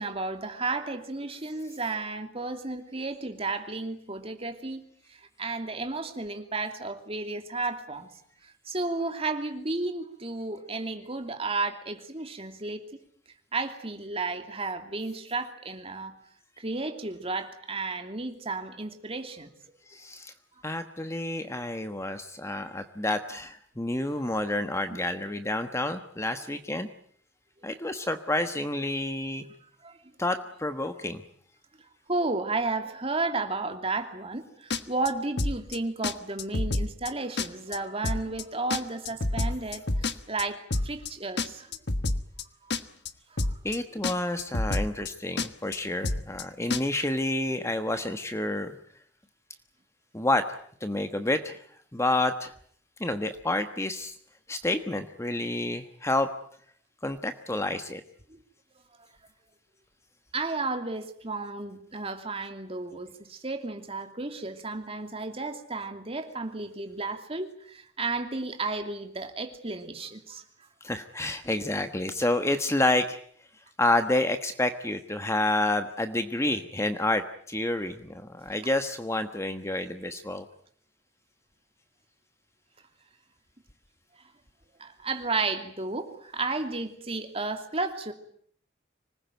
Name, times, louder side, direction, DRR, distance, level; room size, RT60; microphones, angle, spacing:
voice 1, 0.0-4.8 5.1-8.1 8.7-12.8 13.5-16.2 16.6-19.5 27.6-27.7 29.6-30.0 32.1-41.7 42.6-42.7 43.3-43.6 58.3-58.4 60.3-70.4 84.8-88.1, right 3 dB, 30° right, 6 dB, 2.8 m, -33 dB
voice 2, 19.9-20.3 20.6-26.9 27.6-29.4 30.2-31.2 43.6-48.7 50.1-50.5 50.8-51.6 51.9-52.5 53.0-54.1 54.5-56.3 57.0-58.0 70.8-73.2 73.8-80.4, left 2 dB, 15° left, 8 dB, 1.2 m, -29 dB
sound 1, 34.7-35.1 35.4-35.8 36.0-36.1 36.4-37.1 37.4-37.8 38.0-38.4 38.7-40.4 40.7-41.1 41.4-42.4 42.7-43.1 43.4-43.8 44.0-44.1 44.4-45.1 45.4-45.8 46.0-46.4 46.7-46.8, left 2 dB, 60° left, 1.3 m, -28 dB
25.5 x 20.0 x 9.2 m, 0.62 s
head